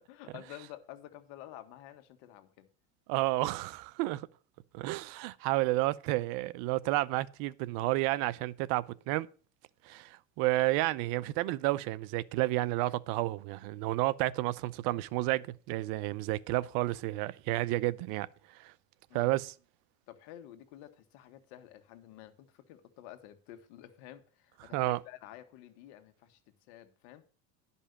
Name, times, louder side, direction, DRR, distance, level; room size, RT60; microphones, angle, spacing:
voice 1, 0.1-2.7 19.1-19.3 20.1-26.4 26.7-27.2, left 13 dB, 65° left, 1.7 m, -50 dB
voice 2, 3.1-4.3 4.7-9.3 9.8-18.3 18.5-18.7 19.1-19.5 24.7-25.0, right 18 dB, 60° right, 0.7 m, -31 dB
11.0 x 5.5 x 6.7 m
supercardioid pair, 120°, 41 cm